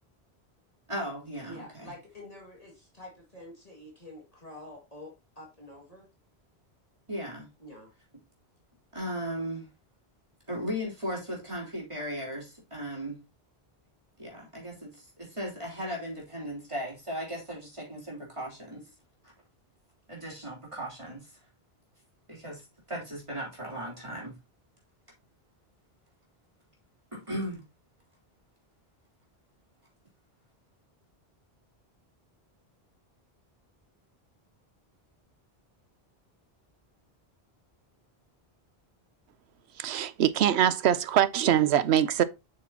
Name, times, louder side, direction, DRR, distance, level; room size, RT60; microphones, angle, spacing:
voice 1, 0.9-1.9 7.1-7.5 8.9-9.7 10.5-13.2 14.2-18.9 20.1-21.3 22.3-24.4 27.1-27.6, equal, 30° right, 3.4 m, -37 dB
voice 2, 1.4-6.1 7.6-7.9, left 1 dB, 35° left, 2.4 m, -47 dB
voice 3, 39.7-42.2, right 10 dB, 85° right, 0.9 m, -23 dB
7.7 x 6.4 x 2.9 m
omnidirectional pair, 1.1 m